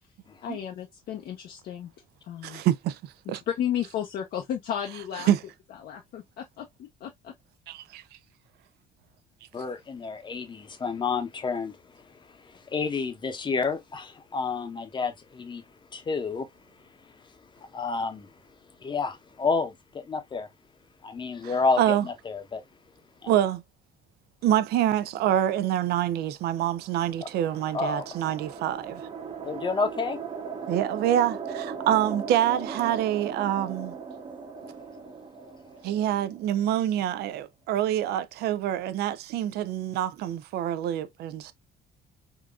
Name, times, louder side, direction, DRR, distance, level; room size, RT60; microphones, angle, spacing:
voice 1, 0.4-1.9 2.3-2.6 3.5-5.3 5.8-7.3, left 9 dB, 65° left, 0.6 m, -33 dB
voice 2, 2.4-3.4 5.3-5.4 7.7-8.0 21.4-22.0 23.3-23.6 24.4-29.0 30.7-33.9 35.8-41.5, right 11 dB, 75° right, 0.4 m, -26 dB
voice 3, 9.5-11.8 12.7-15.6 15.9-16.5 17.7-18.3 18.8-19.8 20.0-20.5 21.0-22.6 23.2-23.3 27.7-28.0 29.5-30.2, left 4 dB, 25° left, 0.7 m, -29 dB
sound 1, 26.6-37.0, right 5 dB, 30° right, 0.7 m, -38 dB
3.8 x 2.3 x 2.3 m
cardioid pair, 110°, 17 cm